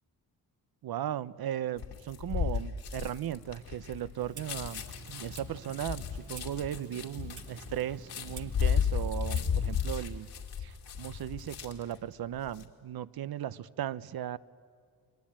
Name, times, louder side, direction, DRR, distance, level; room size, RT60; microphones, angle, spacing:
voice 1, 0.8-4.8 5.1-10.3 10.6-14.4, right 11 dB, 65° right, 16 dB, 0.8 m, -37 dB
sound 1, 1.8-11.9 12.3-12.6, left 7 dB, 80° left, 2.6 m, -34 dB
Clock, 4.2-9.8, right 5 dB, 50° right, 1.3 m, -50 dB
30.0 x 22.5 x 8.7 m, 2.2 s
wide cardioid pair, 125°, 39 cm